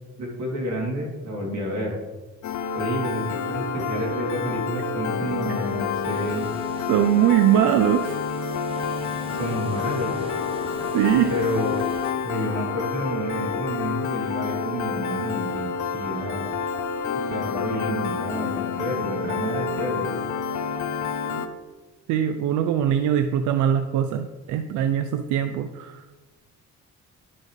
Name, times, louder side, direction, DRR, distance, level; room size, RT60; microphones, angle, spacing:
voice 1, 0.2-2.0 2.7-6.5 9.3-10.1 11.3-11.9 12.2-16.5 17.3-20.1, equal, 65° right, -1 dB, 2.7 m, -30 dB
Piano, 2.4-21.5, left 6 dB, 70° left, 0.7 m, -28 dB
sound 1, 5.3-12.1, right 1 dB, 20° right, 1.2 m, -43 dB
voice 2, 6.9-8.2 10.9-11.3 22.1-26.0, right 10 dB, 85° right, 9 dB, 0.5 m, -22 dB
11.0 x 5.2 x 3.1 m, 1.2 s
cardioid pair, 90°, 30 cm